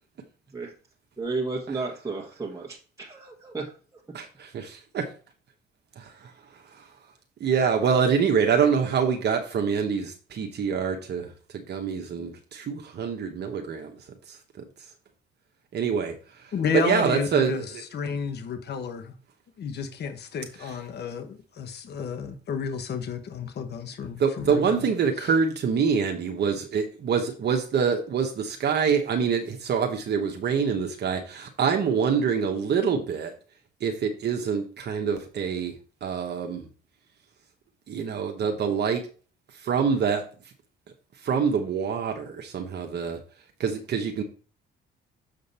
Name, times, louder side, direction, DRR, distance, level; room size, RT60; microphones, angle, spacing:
voice 1, 1.2-3.7, right 3 dB, 15° right, 1.5 m, -33 dB
voice 2, 4.1-5.1 6.0-6.9 7.4-12.3 12.7-13.9 14.3-14.4 15.7-17.8 20.6-20.7 24.2-33.3 33.8-35.7 36.0-36.7 37.9-39.1 39.5-40.2 41.2-43.2 43.6-44.2, right 6 dB, 55° right, 1.1 m, -26 dB
voice 3, 16.5-17.6 17.9-19.2 19.6-24.8 25.2-25.3, left 6 dB, 50° left, 1.1 m, -31 dB
6.8 x 5.1 x 4.2 m
cardioid pair, 85°, 21 cm